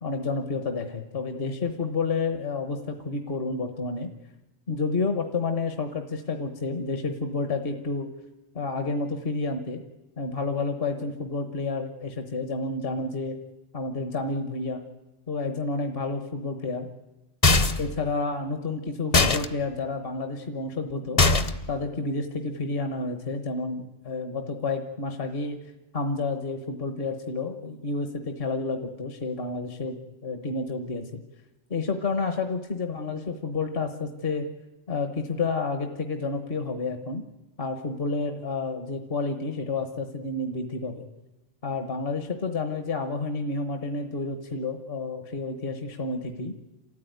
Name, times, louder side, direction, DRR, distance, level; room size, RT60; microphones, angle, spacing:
voice 1, 0.0-4.1 4.7-8.1 8.5-9.8 10.2-13.4 13.7-14.8 15.3-16.9 17.8-21.2 21.7-25.6 25.9-31.2 31.7-34.5 34.9-37.2 37.6-41.1 41.6-46.5, left 3 dB, 55° left, 7 dB, 1.4 m, -30 dB
sound 1, 17.4-17.9 19.1-19.5 21.2-21.7, left 3 dB, 35° left, 0.8 m, -20 dB
29.0 x 13.5 x 9.3 m, 1.0 s
omnidirectional pair, 1.2 m